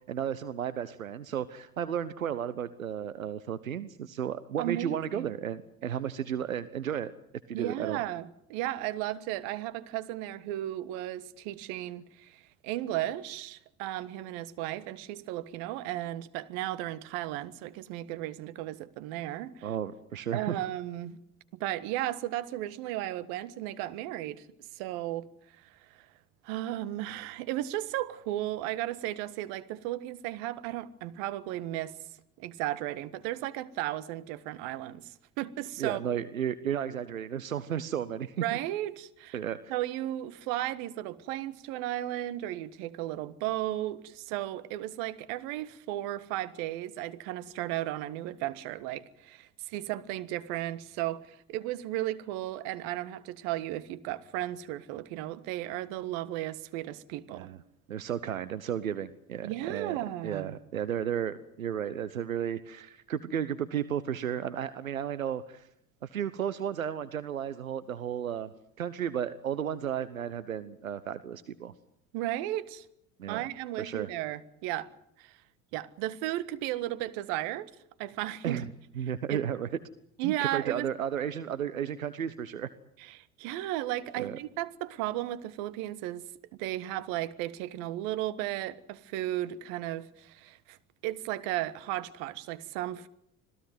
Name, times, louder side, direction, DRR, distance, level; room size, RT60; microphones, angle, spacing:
voice 1, 0.1-7.1 7.5-8.0 19.6-20.6 35.8-38.4 39.3-39.6 57.3-57.6 57.9-65.7 66.0-68.5 68.8-71.7 73.2-73.4 73.8-74.1 78.4-78.7 79.0-79.7 80.2-82.7 84.2-84.4, right 9 dB, 85° right, 1.0 m, -33 dB
voice 2, 4.6-5.3 7.5-19.7 20.3-21.2 21.6-24.4 24.7-25.3 25.9-26.1 26.4-31.9 32.4-36.0 38.4-39.4 39.7-57.5 59.4-60.6 72.1-72.8 73.3-74.9 75.2-75.4 75.7-77.7 78.0-78.6 79.3-79.4 80.2-80.9 83.0-86.2 86.6-90.8 91.0-93.1, right 14 dB, 60° right, 1.6 m, -35 dB
26.0 x 17.5 x 9.4 m
hypercardioid pair, 65°, 40 cm